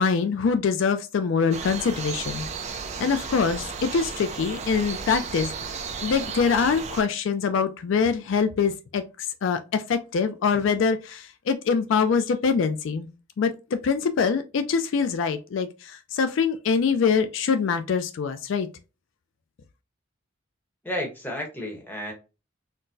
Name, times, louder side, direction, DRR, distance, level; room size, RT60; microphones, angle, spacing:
voice 1, 0.0-2.5 3.0-5.5 6.0-9.0 9.4-13.1 13.4-18.7, left 5 dB, 70° left, 0.3 m, -24 dB
sound 1, 1.5-7.0, right 5 dB, 35° right, 0.3 m, -34 dB
voice 2, 20.8-22.1, left 1 dB, 10° left, 0.9 m, -32 dB
4.2 x 2.0 x 2.6 m
head